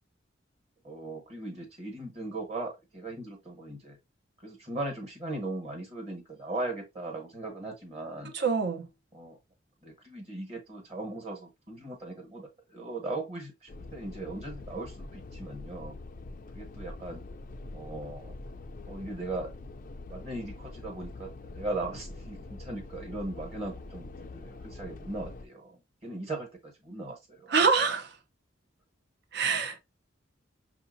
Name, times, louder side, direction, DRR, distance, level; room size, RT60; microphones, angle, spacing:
voice 1, 0.8-4.0 4.4-8.3 9.1-9.4 9.8-15.9 16.5-17.2 17.7-18.3 18.9-19.5 20.1-27.5, right 2 dB, 35° right, 1.5 m, -38 dB
voice 2, 8.3-8.9 27.5-28.2 29.3-29.8, right 5 dB, 55° right, 0.7 m, -25 dB
sound 1, 13.7-25.5, left 2 dB, 45° left, 0.4 m, -44 dB
5.7 x 2.7 x 2.6 m
head